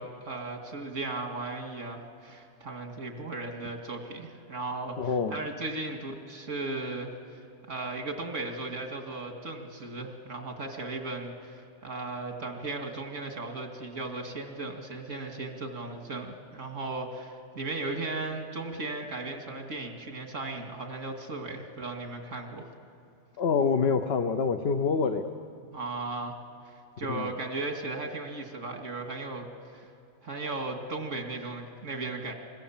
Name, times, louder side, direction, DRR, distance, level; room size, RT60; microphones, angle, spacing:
voice 1, 0.0-7.4 7.7-22.7 25.7-26.4 26.7-29.5 29.7-29.8 30.2-32.3, right 2 dB, 80° right, 3 dB, 2.5 m, -36 dB
voice 2, 5.0-5.4 23.4-25.3 27.1-27.3, left 5 dB, 55° left, 7 dB, 1.1 m, -26 dB
25.5 x 25.0 x 7.3 m, 2.4 s
omnidirectional pair, 1.3 m